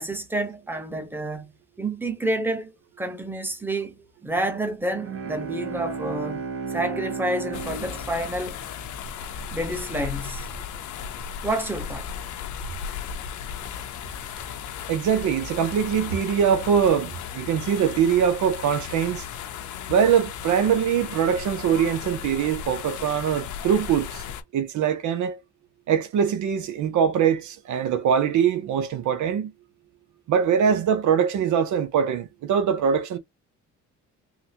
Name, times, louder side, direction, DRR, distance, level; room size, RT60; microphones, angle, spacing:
voice 1, 0.0-1.5 1.8-8.6 9.5-10.5 11.4-12.1, right 1 dB, 5° right, 1.0 m, -29 dB
Bowed string instrument, 4.9-9.5, right 5 dB, 45° right, 0.9 m, -34 dB
sound 1, 7.5-24.4, left 8 dB, 75° left, 0.7 m, -36 dB
voice 2, 14.9-19.3 19.9-24.2 24.5-25.4 25.9-29.5 30.3-33.2, right 8 dB, 75° right, 0.7 m, -22 dB
3.8 x 2.2 x 2.8 m
cardioid pair, 90°, 30 cm